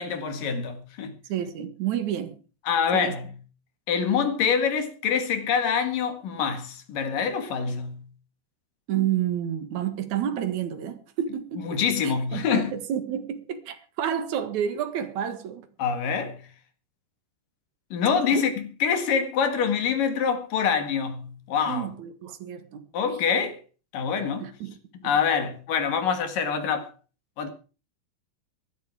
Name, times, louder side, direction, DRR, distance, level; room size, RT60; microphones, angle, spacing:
voice 1, 0.0-1.1 2.6-3.3 3.9-8.0 11.6-12.7 15.8-16.4 17.9-21.9 22.9-23.6 23.9-24.5 25.0-26.9 27.4-27.5, left 6 dB, 55° left, 3.2 m, -25 dB
voice 2, 1.3-2.4 2.9-3.2 8.9-11.8 12.0-15.7 18.3-18.4 21.7-22.9 24.4-24.8 25.0-25.1, right 10 dB, 55° right, 2.2 m, -30 dB
17.0 x 11.5 x 4.8 m
omnidirectional pair, 5.1 m